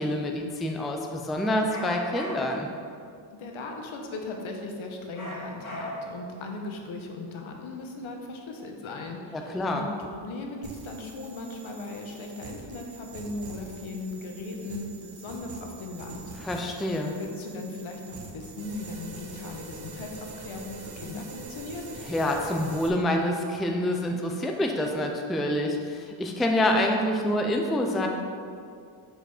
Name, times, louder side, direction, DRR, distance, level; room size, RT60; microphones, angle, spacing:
voice 1, 0.0-2.7 9.3-9.9 16.4-17.1 22.0-28.1, left 1 dB, ahead, 2 dB, 0.3 m, -27 dB
sound 1, 1.7-2.7 5.1-6.2, left 1 dB, 40° left, 1.8 m, -38 dB
voice 2, 3.3-16.8 17.1-21.9, left 2 dB, 75° left, 2 dB, 1.1 m, -38 dB
sound 2, 10.6-22.9, right 4 dB, 50° right, 0.9 m, -44 dB
6.6 x 5.0 x 4.9 m, 2.3 s
wide cardioid pair, 155°, 48 cm